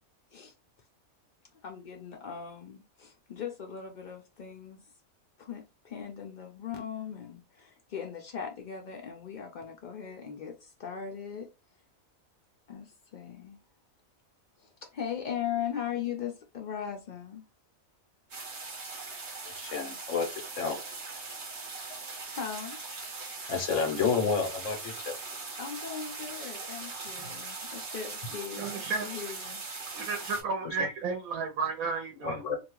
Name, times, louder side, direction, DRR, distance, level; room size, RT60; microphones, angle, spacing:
voice 1, 1.6-4.8 5.4-11.5 12.7-13.6 14.6-17.5 22.3-22.8 25.6-29.6, left 8 dB, 80° left, 0.4 m, -39 dB
sound 1, 18.3-30.4, right 3 dB, 55° right, 1.2 m, -40 dB
voice 2, 19.4-20.8 23.5-25.2 30.6-30.7 32.2-32.6, left 5 dB, 65° left, 1.1 m, -30 dB
voice 3, 28.6-29.2 29.9-32.4, right 4 dB, 85° right, 1.1 m, -33 dB
2.7 x 2.2 x 3.0 m
omnidirectional pair, 1.4 m